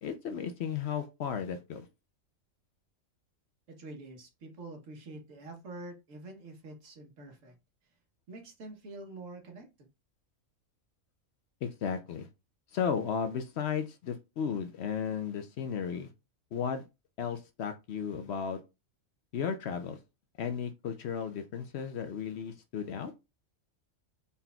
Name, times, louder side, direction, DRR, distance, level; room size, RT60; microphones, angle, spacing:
voice 1, 0.0-1.9 11.6-12.3 12.7-16.1 16.5-16.8 17.2-18.6 19.3-20.0 20.4-23.1, left 7 dB, 65° left, 0.8 m, -34 dB
voice 2, 3.7-7.5 8.3-9.9, right 2 dB, 70° right, 1.5 m, -46 dB
4.1 x 4.0 x 2.3 m
omnidirectional pair, 1.4 m